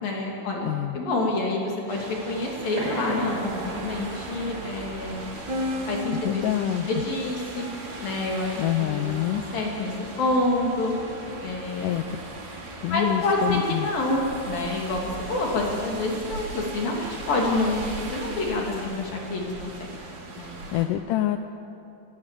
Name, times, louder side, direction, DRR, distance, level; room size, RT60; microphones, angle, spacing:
voice 1, 0.0-0.7 0.9-5.2 5.9-7.7 8.0-9.0 9.5-9.9 10.2-10.9 11.4-11.9 12.9-19.9 20.4-20.5, left 2 dB, 65° left, -1 dB, 4.4 m, -27 dB
voice 2, 0.6-1.0 6.2-6.9 8.6-9.4 11.8-12.0 12.8-13.9 20.7-21.4, left 13 dB, 80° left, 8 dB, 1.9 m, -26 dB
sound 1, 1.9-20.9, right 2 dB, 90° right, 5.2 m, -39 dB
sound 2, 2.7-8.0, right 2 dB, 50° right, 8.6 m, -38 dB
sound 3, 3.1-18.0, left 1 dB, 10° right, 2.1 m, -40 dB
21.5 x 19.0 x 7.5 m, 2.6 s
omnidirectional pair, 4.4 m